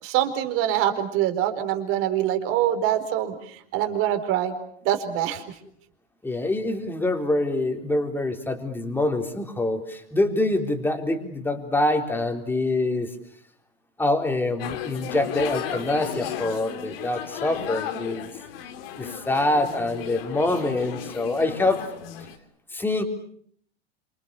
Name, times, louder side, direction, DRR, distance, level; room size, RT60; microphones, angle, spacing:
voice 1, 0.0-4.5 4.8-5.6, right 11 dB, 45° right, 7 dB, 4.3 m, -24 dB
voice 2, 6.2-13.1 14.0-18.3 19.0-21.8 22.7-23.0, left 2 dB, 5° left, 5 dB, 3.9 m, -25 dB
sound 1, 14.6-22.4, left 10 dB, 60° left, 3.5 m, -35 dB
29.5 x 26.5 x 6.9 m, 0.63 s
hypercardioid pair, 130°, 32 cm